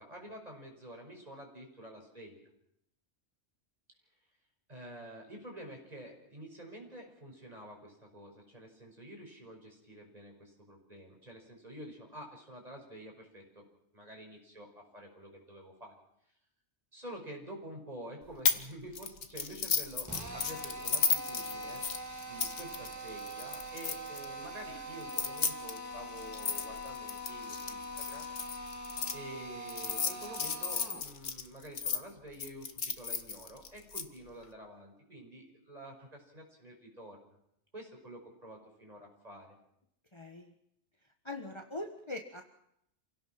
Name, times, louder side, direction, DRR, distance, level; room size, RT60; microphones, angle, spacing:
voice 1, 0.0-2.4 4.7-13.7 13.9-16.0 16.9-21.9 22.2-28.4 29.1-37.2 37.7-39.6, right 1 dB, 35° right, 1 dB, 5.7 m, -49 dB
sound 1, 18.4-18.6 18.9-24.2 25.0-29.1 29.7-32.0 32.4-34.0, left 6 dB, 80° left, 1.6 m, -34 dB
Drill, 20.0-31.1, equal, 15° right, 2.9 m, -43 dB
voice 2, 40.1-40.5 41.2-42.5, left 2 dB, 25° left, 4 dB, 1.4 m, -42 dB
28.0 x 17.0 x 5.9 m, 0.76 s
omnidirectional pair, 1.2 m